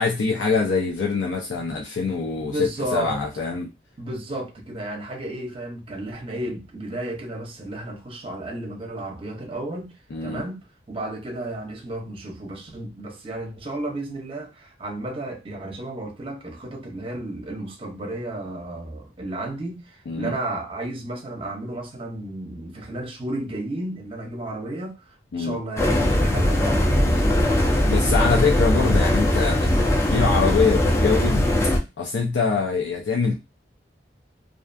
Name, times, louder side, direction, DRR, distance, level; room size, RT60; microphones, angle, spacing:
voice 1, 0.0-3.7 10.1-10.4 20.1-20.4 25.3-25.6 27.9-31.5 32.0-33.3, left 4 dB, 80° left, 0.5 m, -24 dB
voice 2, 2.4-3.2 4.0-9.9 10.2-10.6 10.9-28.3, right 2 dB, 30° right, 0.6 m, -33 dB
sound 1, 25.8-31.8, left 1 dB, 15° left, 0.4 m, -20 dB
2.4 x 2.3 x 2.5 m
head